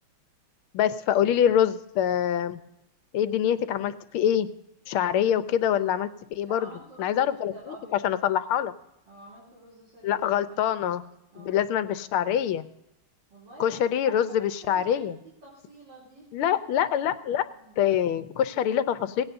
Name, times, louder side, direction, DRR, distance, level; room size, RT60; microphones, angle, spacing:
voice 1, 0.7-2.6 3.1-4.5 4.9-6.6 7.0-7.5 8.0-8.7 10.0-11.0 11.4-12.7 13.6-15.1 16.3-17.4 17.8-19.2, left 10 dB, 90° left, 13 dB, 1.6 m, -25 dB
voice 2, 6.4-8.1 9.1-10.2 10.5-10.6 11.3-11.7 13.3-13.8 14.0-15.1 15.4-16.6 17.5-17.8, right 2 dB, 55° right, -7 dB, 3.8 m, -48 dB
18.0 x 17.0 x 2.6 m, 0.87 s
omnidirectional pair, 2.3 m